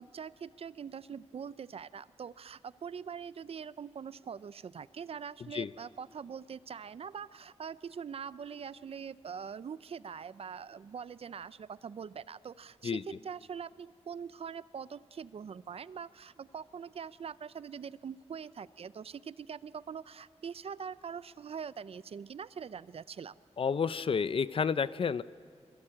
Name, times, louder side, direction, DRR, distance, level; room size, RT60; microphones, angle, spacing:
voice 1, 0.0-23.3, right 7 dB, 60° right, 17 dB, 0.6 m, -43 dB
voice 2, 23.6-25.2, left 6 dB, 55° left, 16 dB, 0.6 m, -30 dB
25.5 x 22.5 x 8.8 m, 2.1 s
wide cardioid pair, 115°, 11 cm